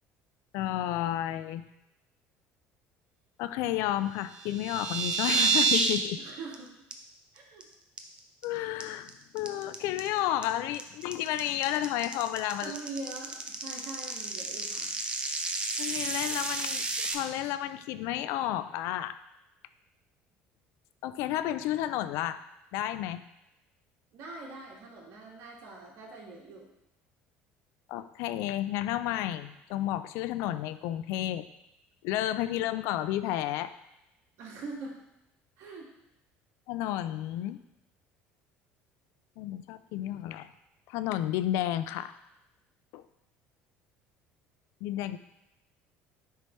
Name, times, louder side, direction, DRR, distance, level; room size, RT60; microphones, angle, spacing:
voice 1, 0.5-1.7 3.4-6.2 8.4-12.7 15.8-19.2 21.0-22.4 22.7-23.2 27.9-31.5 32.0-33.7 36.7-37.6 39.4-40.5 40.9-42.1 42.9-43.0 44.8-45.2, left 13 dB, 75° left, 13 dB, 0.3 m, -31 dB
sound 1, 4.3-6.0 6.3-6.5 6.9-7.0 7.4-7.6 8.0-8.4 8.8-17.1, right 4 dB, 20° right, 0.6 m, -30 dB
voice 2, 6.2-6.7 7.3-7.6 12.6-14.9 24.1-26.7 34.4-35.0 35.6-35.9, right 3 dB, 65° right, -2 dB, 1.7 m, -43 dB
9.7 x 3.3 x 3.1 m, 0.89 s
cardioid pair, 125°, 5 cm